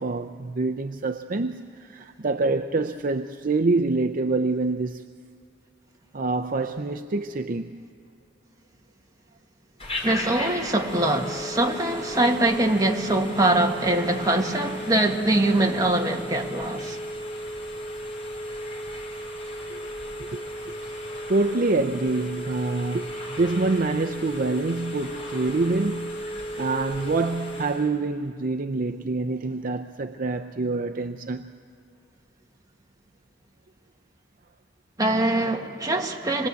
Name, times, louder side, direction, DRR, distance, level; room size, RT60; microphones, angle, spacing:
voice 1, 0.0-5.0 6.1-7.8 19.7-19.8 20.2-20.7 21.3-26.2 26.6-31.5, right 3 dB, 45° right, 0.5 m, -26 dB
Telephone, 9.8-27.9, equal, 35° left, 4.5 m, -35 dB
voice 2, 10.0-17.0 35.0-36.5, right 1 dB, 20° right, 1.7 m, -23 dB
26.5 x 21.0 x 8.2 m
head